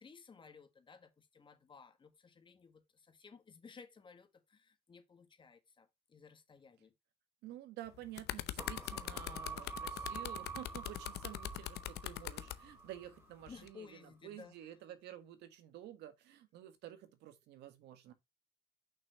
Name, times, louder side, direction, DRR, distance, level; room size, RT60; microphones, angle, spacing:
voice 1, 0.0-6.9 13.5-14.5, left 5 dB, 30° left, 1.8 m, -57 dB
voice 2, 7.4-18.1, right 12 dB, 80° right, 1.7 m, -51 dB
sound 1, 7.9-12.6 13.5-13.7, left 14 dB, 75° left, 0.7 m, -42 dB
sound 2, 8.6-13.3 13.6-13.7, right 4 dB, 15° right, 2.0 m, -47 dB
6.6 x 5.9 x 3.1 m
cardioid pair, 110°, 17 cm